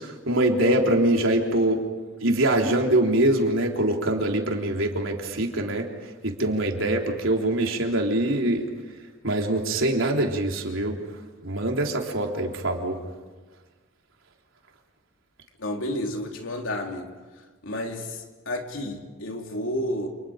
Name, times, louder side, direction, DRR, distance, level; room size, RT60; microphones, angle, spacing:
voice 1, 0.0-1.8 2.2-8.7 9.2-11.0 11.4-13.0, right 1 dB, 85° right, 1 dB, 3.6 m, -24 dB
voice 2, 15.6-17.1 17.6-20.1, left 1 dB, 80° left, 2 dB, 3.5 m, -31 dB
30.0 x 28.5 x 5.1 m, 1.3 s
head